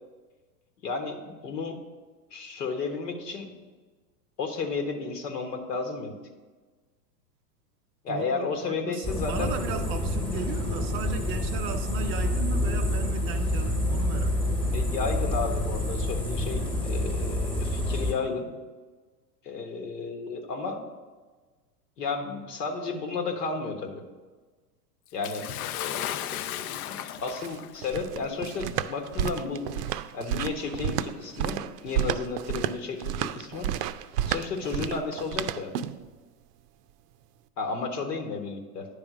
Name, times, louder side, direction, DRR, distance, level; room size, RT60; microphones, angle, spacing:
voice 1, 0.8-1.8 2.3-3.5 4.4-6.1 8.0-9.5 14.7-18.5 19.4-20.8 22.0-24.0 25.1-25.5 25.7-29.7 30.1-33.7 34.3-35.7 37.6-38.9, left 4 dB, 85° left, 1.3 m, -33 dB
voice 2, 8.1-14.8, right 6 dB, 25° right, 0.4 m, -36 dB
sound 1, 9.0-18.1, left 1 dB, 10° left, 1.1 m, -28 dB
Bathtub (filling or washing) / Splash splatter, 25.2-27.8 28.8-28.9 29.8-29.9, left 12 dB, 65° left, 0.5 m, -35 dB
sound 2, 27.2-36.1, right 11 dB, 75° right, 0.5 m, -31 dB
9.7 x 3.6 x 6.0 m
hypercardioid pair, 115°, 48 cm